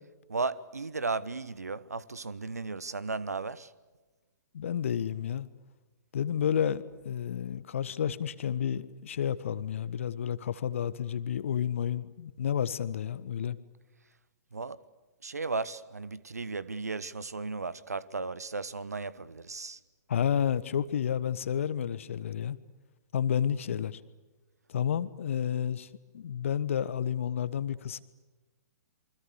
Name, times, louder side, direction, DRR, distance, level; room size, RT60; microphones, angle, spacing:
voice 1, 0.3-3.7 14.5-14.8 15.2-19.8, right 4 dB, 70° right, 1.3 m, -35 dB
voice 2, 4.5-5.5 6.1-13.6 20.1-22.6 23.1-24.0 24.7-25.9 26.1-28.0, left 8 dB, 50° left, 1.4 m, -30 dB
28.0 x 25.0 x 8.1 m
figure-of-eight pair, 120°, 9 cm